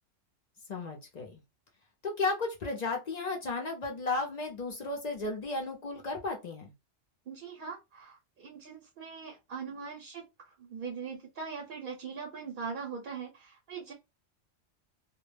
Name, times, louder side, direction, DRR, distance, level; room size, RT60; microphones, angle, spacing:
voice 1, 0.7-1.4 2.0-6.7, left 3 dB, 60° left, 0.4 m, -34 dB
voice 2, 7.3-13.9, right 5 dB, 55° right, 0.7 m, -41 dB
2.2 x 2.1 x 3.1 m
omnidirectional pair, 1.3 m